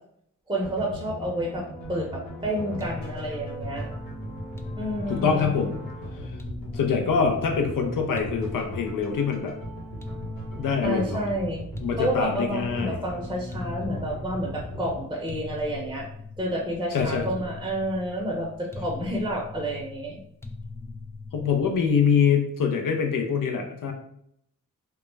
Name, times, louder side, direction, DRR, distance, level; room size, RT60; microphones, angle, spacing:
voice 1, 0.5-1.6 1.9-3.9 4.8-5.5 10.8-11.6 12.0-16.1 16.4-20.2, right 1 dB, 15° right, -1 dB, 0.7 m, -29 dB
sound 1, 0.6-15.0, equal, 90° left, 0.9 m, -38 dB
sound 2, 2.8-22.1, left 3 dB, 10° left, 0.3 m, -41 dB
voice 2, 5.1-5.9 6.7-9.5 10.6-11.2 11.8-13.0 16.9-17.3 21.3-23.9, left 6 dB, 65° left, 3 dB, 0.5 m, -24 dB
2.2 x 2.0 x 3.1 m, 0.71 s
cardioid pair, 40°, 34 cm